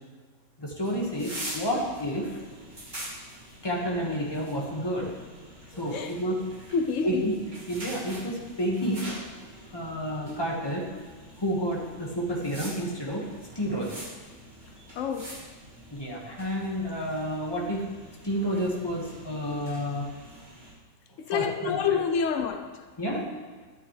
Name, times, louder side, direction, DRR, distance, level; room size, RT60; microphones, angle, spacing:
voice 1, 0.6-2.4 3.6-5.1 5.8-6.5 7.0-7.4 7.7-9.1 9.7-10.9 11.4-13.3 13.5-14.0 14.8-14.9 15.9-17.9 18.2-20.1 21.3-21.8 23.0-23.3, equal, 20° left, -2 dB, 1.6 m, -30 dB
sound 1, 0.8-20.7, equal, 40° right, 2.0 m, -44 dB
voice 2, 5.9-6.2 6.7-7.3 15.0-15.4 21.2-22.8, left 6 dB, 85° left, 7 dB, 1.0 m, -28 dB
11.0 x 9.7 x 3.3 m, 1.5 s
omnidirectional pair, 1.3 m